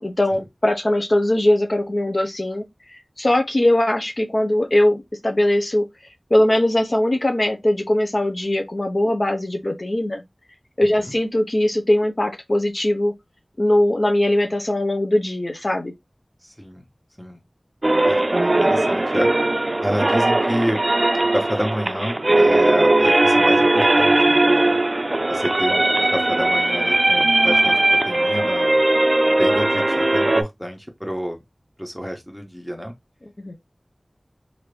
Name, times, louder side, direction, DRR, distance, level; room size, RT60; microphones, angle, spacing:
voice 1, 0.0-5.8 6.3-10.2 10.8-13.1 13.6-15.9 33.4-33.6, left 1 dB, 55° left, 0.6 m, -20 dB
voice 2, 10.8-11.1 16.4-16.8 17.2-17.4 18.1-19.3 19.8-20.8 21.3-24.8 25.3-28.8 29.4-31.4 31.8-32.9, equal, 5° left, 1.1 m, -29 dB
sound 1, 17.8-30.4, right 2 dB, 50° right, 0.4 m, -18 dB
3.0 x 2.5 x 3.2 m
wide cardioid pair, 45°, 0 cm